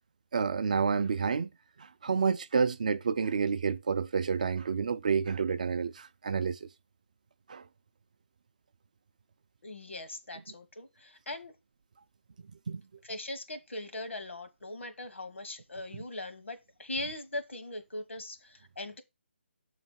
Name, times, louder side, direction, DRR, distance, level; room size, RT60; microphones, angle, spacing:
voice 1, 0.3-1.5 2.0-6.7 7.5-7.6 12.7-12.8, right 5 dB, 40° right, 0.4 m, -29 dB
voice 2, 9.6-11.5 13.0-19.0, left 2 dB, 85° left, 1.4 m, -40 dB
7.0 x 3.2 x 5.4 m
hypercardioid pair, 170°, 7 cm